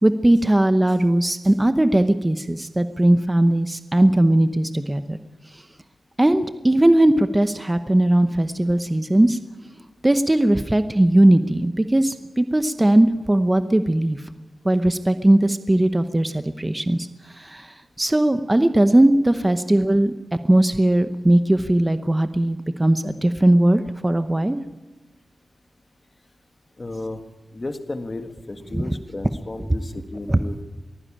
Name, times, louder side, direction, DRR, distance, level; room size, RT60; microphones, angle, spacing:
voice 1, 0.0-5.2 6.2-9.4 10.0-14.2 14.6-17.1 17.4-17.7 18.0-20.1 20.5-24.6 28.7-28.8 30.3-30.4, right 1 dB, 15° right, 10 dB, 0.8 m, -18 dB
voice 2, 26.8-27.2 27.5-30.6, left 2 dB, 25° left, 7 dB, 1.7 m, -33 dB
22.5 x 15.5 x 8.7 m, 1.1 s
wide cardioid pair, 140°, 0 cm